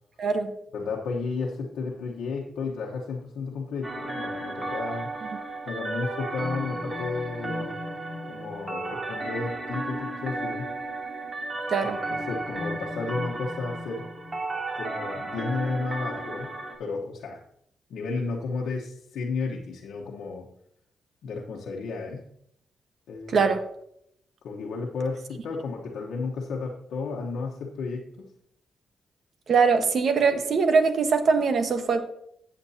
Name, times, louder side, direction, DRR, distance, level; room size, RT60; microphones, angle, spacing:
voice 1, 0.2-0.5 11.7-12.0 23.3-23.6 29.5-32.0, right 5 dB, 65° right, 7 dB, 1.3 m, -22 dB
voice 2, 0.7-5.1 5.6-7.8 8.3-10.8 12.1-14.1 14.8-17.4 17.9-20.5 21.2-22.3 23.1-23.5 24.4-28.3, left 4 dB, 85° left, -3 dB, 1.1 m, -33 dB
sound 1, 3.8-16.8, right 2 dB, 35° right, 2.9 m, -33 dB
14.0 x 7.8 x 2.8 m, 0.72 s
cardioid pair, 75°, 0 cm